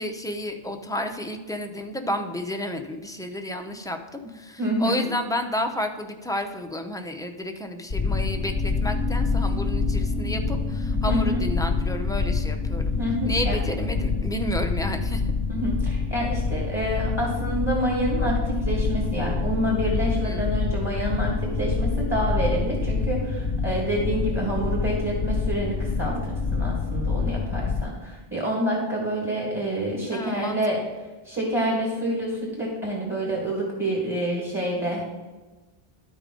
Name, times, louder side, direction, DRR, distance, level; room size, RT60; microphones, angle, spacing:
voice 1, 0.0-12.8 13.2-15.3 20.2-20.4 30.1-30.6, left 1 dB, 5° left, 4 dB, 0.4 m, -31 dB
voice 2, 4.6-5.1 11.0-11.4 13.0-13.6 15.5-30.8 31.2-35.1, right 1 dB, 10° right, -3 dB, 1.7 m, -27 dB
sound 1, 7.9-27.8, left 4 dB, 45° left, 1.3 m, -26 dB
12.0 x 5.0 x 3.8 m, 1.2 s
omnidirectional pair, 1.1 m